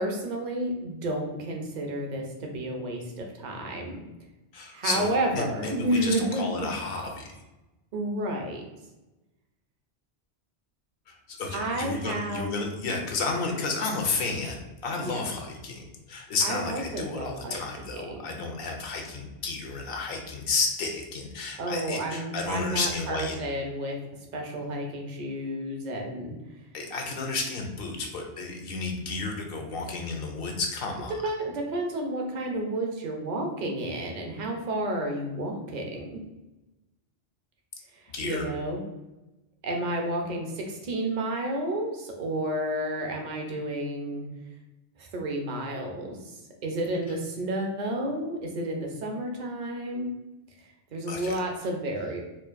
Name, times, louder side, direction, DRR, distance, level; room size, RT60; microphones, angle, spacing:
voice 1, 0.0-4.0 4.7-6.7 7.9-8.6 11.5-12.5 15.0-15.4 16.4-17.6 17.9-18.2 21.6-24.0 24.3-26.4 31.2-36.2 38.2-38.8 39.6-44.2 45.0-50.1 50.9-52.2, right 1 dB, 50° right, 1 dB, 0.7 m, -31 dB
voice 2, 4.5-5.1 5.3-7.3 11.1-23.4 26.7-31.1 38.1-38.4 51.1-51.3, left 3 dB, 65° left, 3 dB, 0.8 m, -32 dB
4.4 x 2.4 x 2.5 m, 1.0 s
omnidirectional pair, 1.1 m